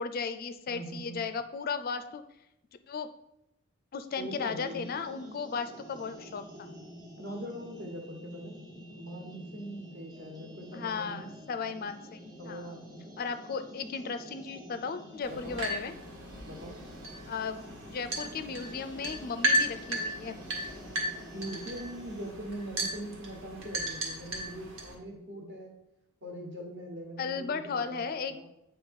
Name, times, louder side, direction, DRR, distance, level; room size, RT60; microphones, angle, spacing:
voice 1, 0.0-2.2 2.9-3.1 3.9-6.7 10.7-12.7 13.2-15.9 17.3-17.6 17.9-20.4 27.2-28.4, left 5 dB, 45° left, 10 dB, 0.4 m, -35 dB
voice 2, 0.7-1.2 4.2-4.8 7.2-8.6 8.9-11.3 12.4-13.2 15.3-15.6 16.5-16.8 21.3-25.8 26.2-28.4, right 1 dB, 55° right, 2 dB, 1.3 m, -42 dB
sound 1, 4.1-22.4, equal, 20° right, 0.9 m, -48 dB
sound 2, 15.2-24.9, right 1 dB, 70° right, 1.5 m, -35 dB
8.8 x 3.0 x 5.2 m, 0.85 s
head